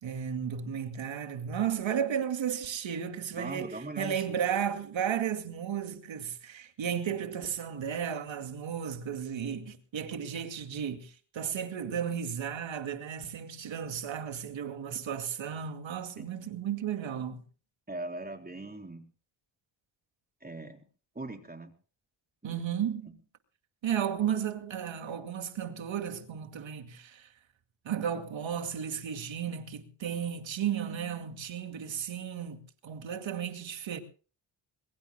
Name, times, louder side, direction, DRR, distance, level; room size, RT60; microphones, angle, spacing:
voice 1, 0.0-17.4 22.4-23.2 23.8-27.3 27.8-34.0, right 8 dB, 65° right, 2.3 m, -34 dB
voice 2, 3.4-4.4 16.2-16.3 17.9-19.0 20.4-20.8 21.2-21.7 22.4-22.6, right 2 dB, 20° right, 3.8 m, -40 dB
23.0 x 22.0 x 2.2 m
cardioid pair, 65°, 48 cm